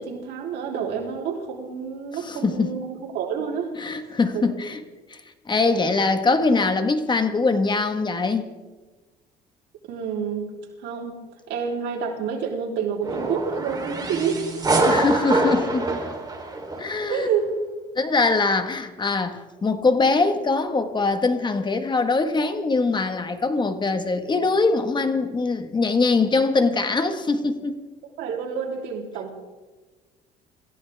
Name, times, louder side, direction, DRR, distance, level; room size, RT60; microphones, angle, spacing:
voice 1, 0.0-3.7 4.3-4.6 9.9-10.5 10.8-11.2 11.5-14.9 17.1-17.5 28.2-29.4, right 6 dB, 85° right, 0 dB, 3.6 m, -28 dB
voice 2, 2.2-2.7 3.8-4.8 5.1-5.2 5.5-8.5 14.8-15.9 16.8-17.3 17.9-27.7, left 3 dB, 25° left, 8 dB, 1.6 m, -22 dB
sound 1, 13.0-17.1, right 2 dB, 25° right, 3.7 m, -25 dB
26.5 x 15.0 x 3.6 m, 1.2 s
cardioid pair, 110°, 17 cm